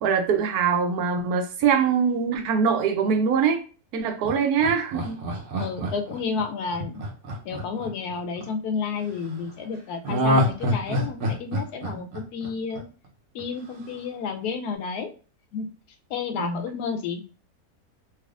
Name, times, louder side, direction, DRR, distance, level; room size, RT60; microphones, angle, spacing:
voice 1, 0.0-3.6 3.9-5.3 16.4-16.6, right 6 dB, 80° right, 1.1 m, -23 dB
Laughter, 4.2-8.5 10.0-13.1 13.4-13.5, equal, 60° right, 1.0 m, -26 dB
voice 2, 5.6-7.0 7.4-12.8 13.3-15.1 15.5-15.7 16.1-17.2, left 5 dB, 90° left, 1.1 m, -31 dB
3.3 x 3.0 x 2.4 m
omnidirectional pair, 1.6 m